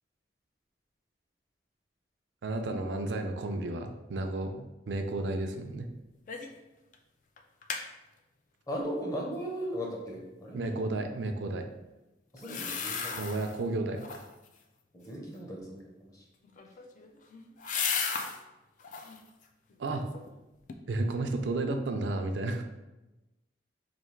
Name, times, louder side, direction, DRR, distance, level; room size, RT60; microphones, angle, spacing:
voice 1, 2.4-5.9 10.5-11.7 13.2-14.2 19.8-20.0 20.9-22.6, right 2 dB, 85° right, 6 dB, 0.5 m, -32 dB
sound 1, 6.3-6.6 6.9-7.0 7.4-7.9 12.4-13.6 14.0-14.5 16.4-18.4 18.8-19.2 19.7-20.4 20.7-20.8, left 6 dB, 45° left, 0.3 m, -35 dB
voice 2, 8.7-11.0 12.3-13.2 14.9-16.1, equal, 20° left, -2 dB, 0.7 m, -37 dB
3.3 x 2.7 x 4.4 m, 1.0 s
head